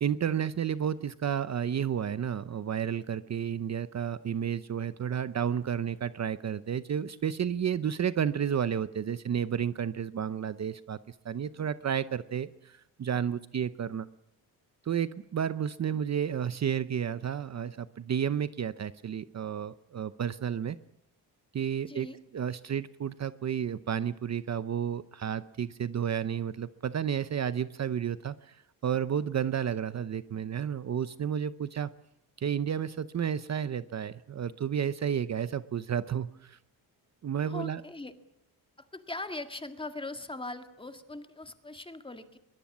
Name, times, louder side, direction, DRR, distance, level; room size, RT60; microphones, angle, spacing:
voice 1, 0.0-14.1 14.8-20.8 21.5-22.1 22.3-31.9 32.4-36.6 37.2-37.8, right 8 dB, 45° right, 14 dB, 0.7 m, -31 dB
voice 2, 21.9-22.2 37.4-38.1 38.8-42.4, left 2 dB, 15° left, 7 dB, 1.9 m, -40 dB
22.5 x 21.0 x 7.3 m, 0.84 s
wide cardioid pair, 130°, 38 cm